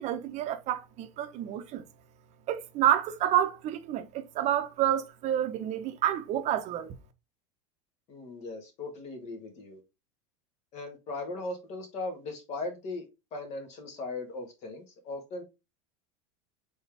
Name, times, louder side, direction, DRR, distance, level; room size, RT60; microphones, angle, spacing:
voice 1, 0.0-1.8 2.5-7.0, right 11 dB, 45° right, 0.8 m, -29 dB
voice 2, 8.1-9.8 10.7-13.0 13.3-15.4, left 2 dB, 45° left, 1.6 m, -38 dB
4.2 x 3.8 x 3.3 m
supercardioid pair, 125°, 17 cm